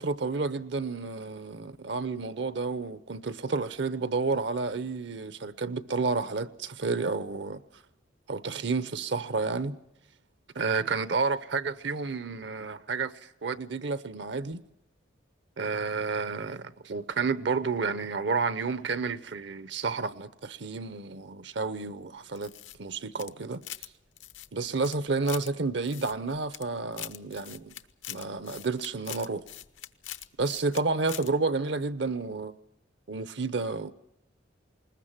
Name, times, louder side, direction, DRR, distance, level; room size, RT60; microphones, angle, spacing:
voice 1, 0.0-7.6 8.3-9.8 10.5-14.6 15.6-22.5 22.8-23.6 24.5-27.7 28.1-29.4 30.4-32.6 33.1-33.9, right 4 dB, 65° right, 0.8 m, -30 dB
sound 1, 22.4-23.9 24.2-25.5 25.9-26.7 26.9-30.8 31.1-31.3, left 13 dB, 85° left, 0.9 m, -42 dB
21.0 x 20.0 x 7.4 m
head